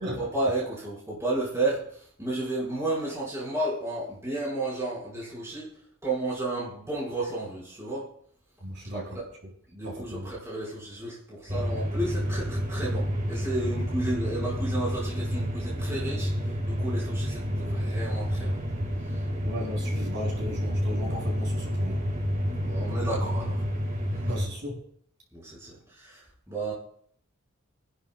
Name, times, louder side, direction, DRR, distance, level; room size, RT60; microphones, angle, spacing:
voice 1, 0.2-5.7 6.0-8.1 8.9-9.2 9.7-18.6 19.1-19.2 22.6-23.6 24.0-24.3 25.3-26.7, right 2 dB, 15° right, 4.6 m, -32 dB
voice 2, 8.6-9.2 9.8-10.3 19.4-22.0 24.2-24.8, equal, 55° right, 5.5 m, -36 dB
sound 1, 11.5-24.5, equal, 35° right, 1.8 m, -29 dB
30.0 x 11.5 x 2.2 m
head